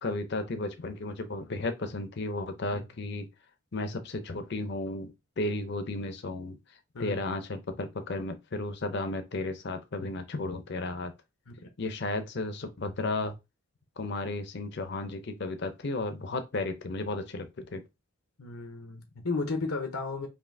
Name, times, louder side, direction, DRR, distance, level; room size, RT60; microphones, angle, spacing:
voice 1, 0.0-3.3 3.7-6.6 7.0-11.1 11.8-13.3 14.0-17.8, left 2 dB, 50° left, 0.6 m, -34 dB
voice 2, 18.4-20.3, left 3 dB, 85° left, 0.8 m, -34 dB
5.3 x 2.7 x 2.6 m
head